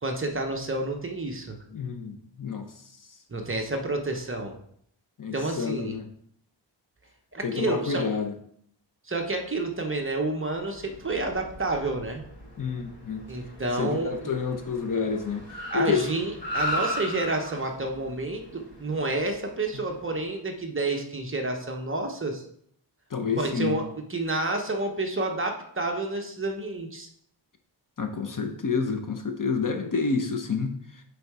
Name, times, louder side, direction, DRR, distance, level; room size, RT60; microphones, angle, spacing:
voice 1, 0.0-1.6 3.3-4.5 5.3-6.0 7.3-8.1 9.1-12.2 13.3-14.3 15.7-22.4 23.4-27.1, right 2 dB, 25° right, 3 dB, 0.9 m, -29 dB
voice 2, 1.7-2.7 5.2-6.1 7.4-8.3 12.6-13.2 13.8-15.5 15.7-16.1 23.1-23.8 28.0-30.8, left 5 dB, 45° left, 6 dB, 0.8 m, -28 dB
Car, 10.6-20.2, equal, 70° left, 3.3 m, -37 dB
6.8 x 4.6 x 4.7 m, 0.67 s
wide cardioid pair, 150°, 46 cm